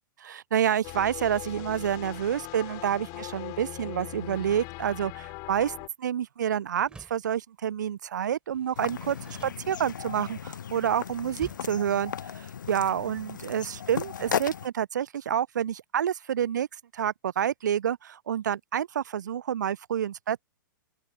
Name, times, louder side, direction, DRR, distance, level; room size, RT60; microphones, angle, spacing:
voice 1, 0.2-16.7 16.9-20.4, right 9 dB, 60° right, 0.5 m, -28 dB
sound 1, 0.8-5.9, left 28 dB, 35° left, 6.1 m, -40 dB
Door, 6.8-7.3 8.5-10.2 11.4-11.9, right 4 dB, 10° right, 5.3 m, -49 dB
sound 2, 8.8-14.7, left 8 dB, 60° left, 0.7 m, -36 dB
open air
figure-of-eight pair, 110°, 11 cm